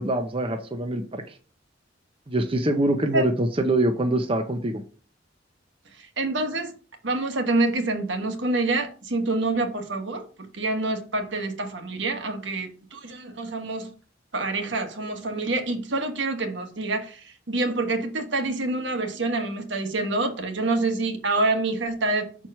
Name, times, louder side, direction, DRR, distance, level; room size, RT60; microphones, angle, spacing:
voice 1, 0.0-1.4 2.3-4.8, right 1 dB, 30° right, 0.7 m, -24 dB
voice 2, 6.0-6.7 7.0-13.9 14.3-22.5, right 2 dB, 80° right, 1.4 m, -27 dB
6.1 x 4.5 x 5.5 m
head